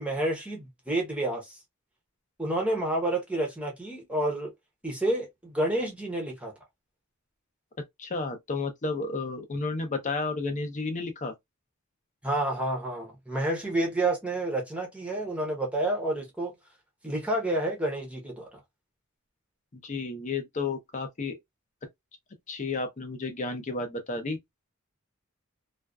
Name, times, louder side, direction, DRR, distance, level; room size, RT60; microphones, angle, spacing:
voice 1, 0.0-1.6 2.4-4.5 4.8-6.5 12.2-16.5 17.0-18.6, right 1 dB, 5° right, 0.7 m, -29 dB
voice 2, 8.0-11.3 19.8-21.4 22.5-24.4, left 3 dB, 35° left, 0.6 m, -32 dB
2.4 x 2.2 x 2.2 m
head